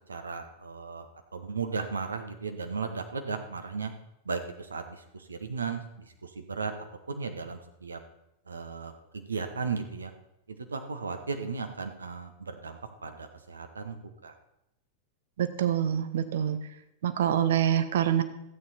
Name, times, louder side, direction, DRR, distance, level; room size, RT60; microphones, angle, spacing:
voice 1, 0.1-1.0 1.3-3.9 4.3-4.4 4.7-4.8 5.3-5.8 6.4-6.7 7.1-8.0 8.5-8.9 9.3-10.1 10.7-14.0 14.2-14.3, right 5 dB, 75° right, 6 dB, 1.1 m, -35 dB
voice 2, 15.4-16.6 17.0-18.2, right 10 dB, 60° right, 11 dB, 0.8 m, -25 dB
12.5 x 9.0 x 4.3 m, 0.85 s
figure-of-eight pair, 90°, 0 cm